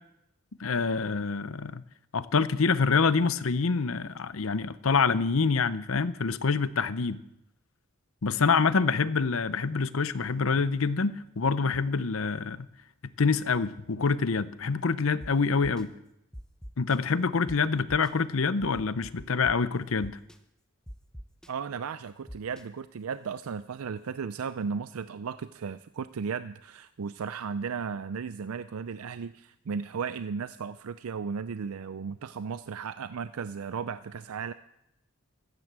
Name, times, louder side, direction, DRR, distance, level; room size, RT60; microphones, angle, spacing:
voice 1, 0.6-1.8 2.1-7.2 8.2-12.7 13.2-15.9 16.8-20.2, left 4 dB, 70° left, 15 dB, 0.7 m, -26 dB
sound 1, 15.2-15.3 15.6-15.8 16.3-17.0 17.5-17.6 17.9-18.1 18.6-19.5 20.0-20.4 20.9-21.5 22.3-22.6, equal, 5° left, 0.8 m, -42 dB
voice 2, 21.5-34.5, right 6 dB, 90° right, 14 dB, 0.5 m, -35 dB
15.0 x 9.7 x 7.5 m, 0.84 s
head